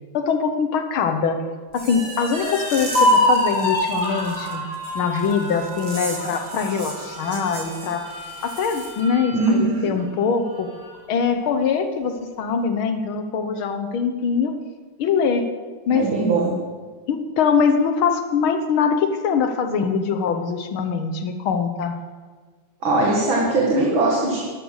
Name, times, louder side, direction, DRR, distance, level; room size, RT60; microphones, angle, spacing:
voice 1, 0.1-1.4 1.7-4.6 5.0-8.1 8.4-10.7 11.1-14.6 15.0-15.5 15.9-16.1 17.1-22.0, left 6 dB, 75° left, 7 dB, 1.8 m, -23 dB
sound 1, 1.7-9.0, right 3 dB, 35° right, 1.7 m, -38 dB
sound 2, 1.9-9.5 10.0-10.1 10.5-11.1, left 1 dB, 20° left, 3.0 m, -26 dB
voice 2, 9.3-9.9 15.9-16.5 22.8-24.4, right 2 dB, 65° right, -3 dB, 2.7 m, -20 dB
12.0 x 12.0 x 6.4 m, 1.5 s
omnidirectional pair, 2.3 m